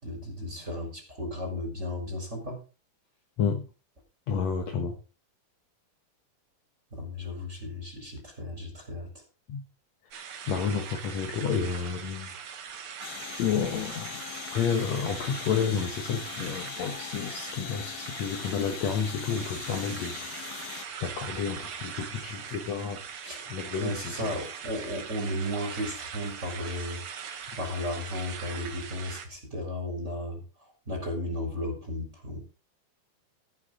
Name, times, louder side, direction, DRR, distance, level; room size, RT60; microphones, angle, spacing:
voice 1, 0.0-2.6 6.9-9.1 23.2-23.5 23.8-27.0 27.6-30.4 30.9-32.4, left 1 dB, 20° right, 3.9 m, -34 dB
voice 2, 4.3-5.0 9.5-9.6 10.5-12.3 13.4-14.2 14.5-20.6 21.0-23.0 23.5-24.3 27.5-27.6, left 6 dB, 60° left, 2.0 m, -30 dB
sound 1, 10.1-29.3, right 7 dB, 70° right, 1.3 m, -41 dB
sound 2, 13.0-20.9, left 13 dB, 80° left, 2.6 m, -41 dB
14.0 x 11.5 x 3.8 m
omnidirectional pair, 4.5 m